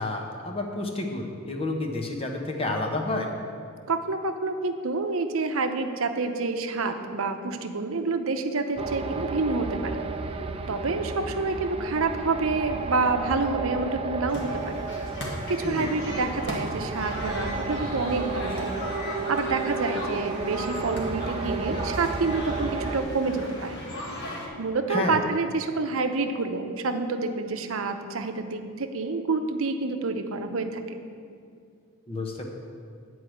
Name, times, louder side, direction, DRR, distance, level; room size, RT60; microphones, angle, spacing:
voice 1, 0.0-3.3 15.6-15.9 24.9-25.2 32.1-32.5, left 2 dB, 25° left, 2 dB, 1.0 m, -30 dB
voice 2, 3.9-9.9 10.7-14.9 15.5-18.7 19.0-23.8 24.6-31.0, right 3 dB, 70° right, 7 dB, 0.7 m, -28 dB
sound 1, 8.8-23.0, right 4 dB, 25° right, 0.4 m, -33 dB
sound 2, 14.3-24.5, left 1 dB, 55° left, 1.7 m, -37 dB
10.0 x 4.7 x 7.8 m, 2.3 s
head